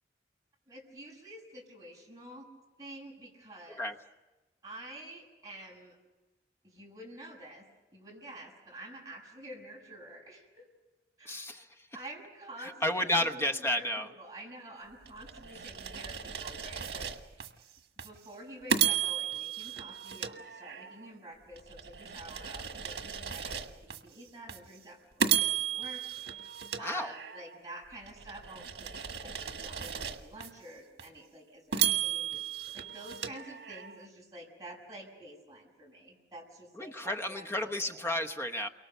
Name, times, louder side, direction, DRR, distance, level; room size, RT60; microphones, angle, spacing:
voice 1, 0.7-2.5 2.8-3.9 4.6-6.0 6.6-7.7 7.9-10.7 11.2-11.4 11.9-17.7 18.0-28.9 29.2-38.1, right 1 dB, 20° right, -2 dB, 7.0 m, -49 dB
voice 2, 11.2-11.9 12.6-14.1 26.7-27.1 36.7-38.7, left 1 dB, 15° left, 5 dB, 1.0 m, -32 dB
sound 1, 15.1-17.5 18.0-18.2 18.7-21.1 21.6-24.0 24.5-24.7 25.2-27.6 28.1-30.5 31.0-31.1 31.7-34.0, right 9 dB, 90° right, 1.6 m, -34 dB
29.5 x 24.0 x 6.8 m, 1.1 s
head